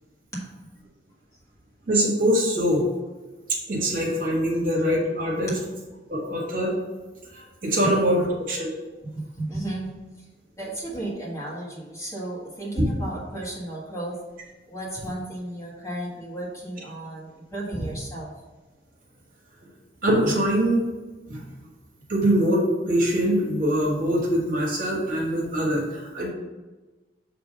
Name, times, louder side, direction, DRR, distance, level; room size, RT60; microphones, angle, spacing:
voice 1, 1.9-2.9 3.7-5.5 6.1-6.7 7.3-8.7 12.8-12.9 20.0-20.8 21.3-21.4 22.1-26.3, equal, 50° right, -3 dB, 1.6 m, -23 dB
voice 2, 7.8-8.2 9.0-9.8 10.6-14.1 14.7-18.3, right 1 dB, 15° left, -5 dB, 1.6 m, -33 dB
6.9 x 3.5 x 5.1 m, 1.2 s
head